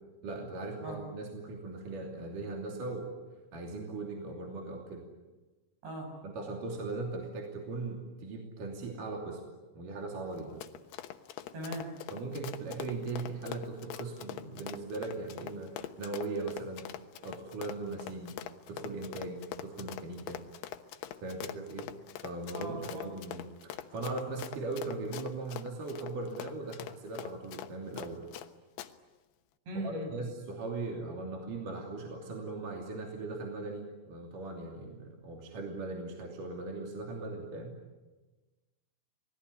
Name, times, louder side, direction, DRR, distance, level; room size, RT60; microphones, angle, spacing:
voice 1, 0.2-3.1 3.5-5.1 6.2-9.4 9.8-10.6 12.1-16.9 17.2-18.3 18.7-20.4 21.2-21.9 22.2-28.2 29.7-37.7, right 3 dB, 50° right, 1 dB, 4.1 m, -39 dB
Run, 10.3-28.5 28.8-28.9, left 12 dB, 70° left, 2.8 m, -43 dB
voice 2, 11.5-11.9 22.5-23.1 29.7-30.1, right 1 dB, 65° right, 1 dB, 9.6 m, -39 dB
29.0 x 20.5 x 9.8 m, 1.2 s
omnidirectional pair, 5.2 m